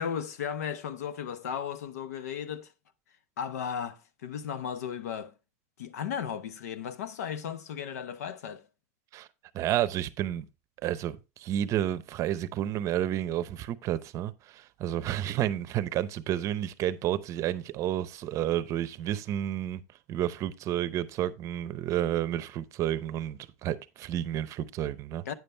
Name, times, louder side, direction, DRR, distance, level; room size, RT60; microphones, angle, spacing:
voice 1, 0.0-2.7 3.4-5.3 5.8-8.6 25.2-25.3, left 8 dB, 90° left, 0.9 m, -35 dB
voice 2, 9.5-10.4 10.8-19.8 20.1-25.2, right 11 dB, 40° right, 0.7 m, -31 dB
9.4 x 7.0 x 3.3 m
supercardioid pair, 135°, 8 cm